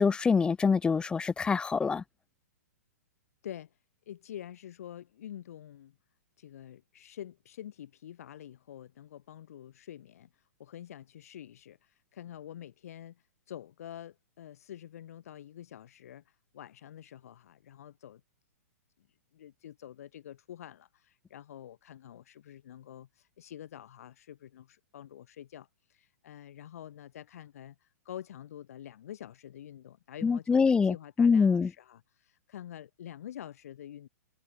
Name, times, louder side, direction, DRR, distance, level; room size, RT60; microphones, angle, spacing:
voice 1, 0.0-2.0 30.2-31.7, left 5 dB, 10° left, 0.4 m, -25 dB
voice 2, 3.4-3.8 4.1-6.0 6.4-18.2 19.3-34.1, left 11 dB, 65° left, 7.9 m, -47 dB
hypercardioid pair, 120°, 9 cm